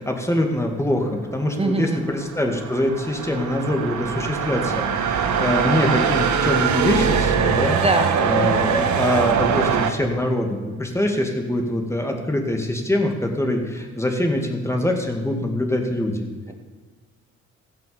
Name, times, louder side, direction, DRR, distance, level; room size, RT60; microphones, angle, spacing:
voice 1, 0.0-7.8 8.2-16.3, left 1 dB, 10° left, 3 dB, 2.2 m, -24 dB
voice 2, 1.6-2.0 7.7-8.2 16.5-16.6, right 2 dB, 20° right, 5 dB, 1.7 m, -22 dB
sound 1, 2.0-9.9, right 7 dB, 70° right, 1.3 m, -22 dB
15.0 x 6.2 x 7.1 m, 1.4 s
cardioid pair, 90°, 30 cm